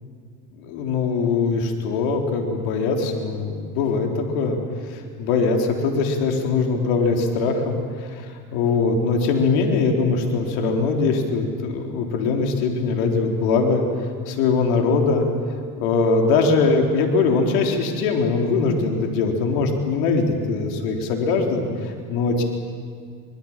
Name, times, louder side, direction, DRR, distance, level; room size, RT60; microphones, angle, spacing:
voice 1, 0.6-4.6 4.9-13.8 14.3-15.3 15.8-22.4, left 4 dB, 75° left, 2 dB, 3.9 m, -22 dB
26.5 x 21.5 x 7.4 m, 2.1 s
supercardioid pair, 90°, 46 cm